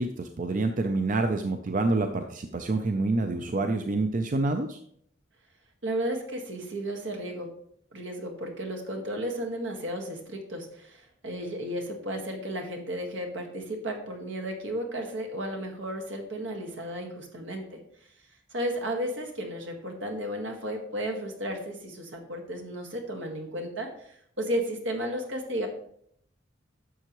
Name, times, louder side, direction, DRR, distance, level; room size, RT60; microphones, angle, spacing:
voice 1, 0.0-4.8, right 2 dB, 45° right, 6 dB, 0.5 m, -27 dB
voice 2, 5.8-7.5 7.9-17.8 18.5-25.7, equal, 80° right, 3 dB, 1.7 m, -33 dB
11.0 x 6.8 x 3.1 m, 0.68 s
head